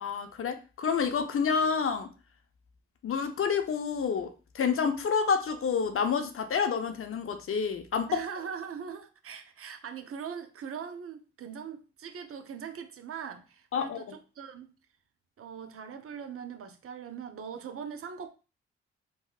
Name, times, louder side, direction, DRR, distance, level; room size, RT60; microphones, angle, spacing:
voice 1, 0.0-2.1 3.0-8.2 13.7-14.0, left 6 dB, 50° left, 0.6 m, -29 dB
voice 2, 8.1-14.7 15.4-18.3, right 7 dB, 50° right, 0.6 m, -41 dB
3.4 x 2.2 x 2.3 m
hypercardioid pair, 45°, 29 cm